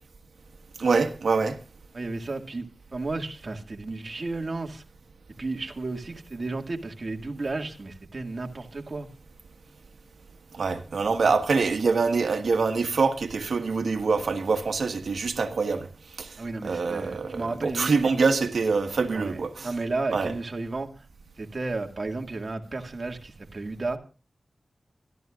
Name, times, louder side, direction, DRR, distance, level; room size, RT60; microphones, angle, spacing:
voice 1, 0.8-1.6 10.5-15.9 16.2-16.4 16.6-19.7 20.1-20.3, right 4 dB, 90° right, 1.4 m, -25 dB
voice 2, 1.9-4.8 5.4-9.1 16.4-18.0 19.1-21.1 21.4-24.0, right 3 dB, 55° right, 2.0 m, -33 dB
25.0 x 13.0 x 2.5 m
wide cardioid pair, 65°, 0 cm